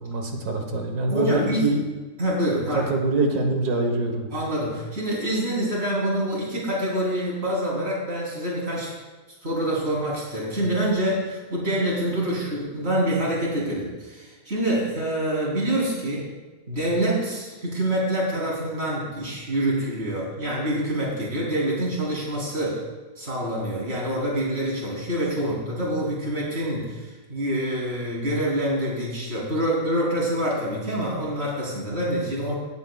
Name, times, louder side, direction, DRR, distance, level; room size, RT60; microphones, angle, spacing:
voice 1, 0.0-1.8 2.6-4.3, right 3 dB, 80° right, 3 dB, 1.8 m, -24 dB
voice 2, 1.1-1.7 2.2-2.9 4.3-8.9 9.4-16.3 16.7-22.8 23.2-32.5, right 1 dB, 45° right, -5 dB, 3.7 m, -26 dB
17.0 x 9.3 x 2.4 m, 1.3 s
omnidirectional pair, 1.6 m